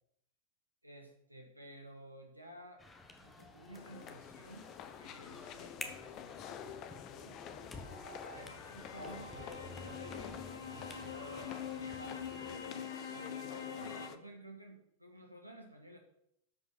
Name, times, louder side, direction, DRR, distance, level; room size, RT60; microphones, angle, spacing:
voice 1, 0.8-2.9 3.2-7.4 8.3-12.3 12.7-13.3 13.8-16.0, right 1 dB, 85° right, 3 dB, 1.4 m, -54 dB
sound 1, 2.8-12.6, left 2 dB, 15° left, 1.4 m, -52 dB
sound 2, 3.7-14.2, left 9 dB, 35° left, 0.8 m, -49 dB
sound 3, 7.5-14.1, left 6 dB, 70° left, 1.3 m, -45 dB
13.0 x 5.5 x 5.6 m, 0.75 s
figure-of-eight pair, 90°, 0 cm